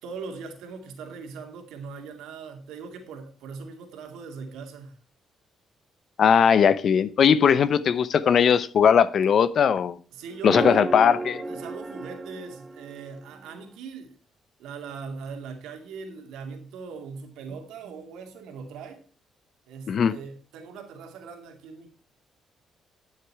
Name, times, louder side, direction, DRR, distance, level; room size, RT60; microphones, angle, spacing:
voice 1, 0.0-5.0 10.1-10.9 11.4-14.1 14.6-19.0 19.7-21.9, right 5 dB, 90° right, 2.3 m, -40 dB
voice 2, 6.2-10.0 10.4-11.4 19.9-20.1, left 7 dB, 60° left, 0.8 m, -19 dB
sound 1, 10.4-13.7, right 3 dB, 30° right, 1.0 m, -33 dB
11.5 x 6.7 x 4.6 m
cardioid pair, 90°, 0 cm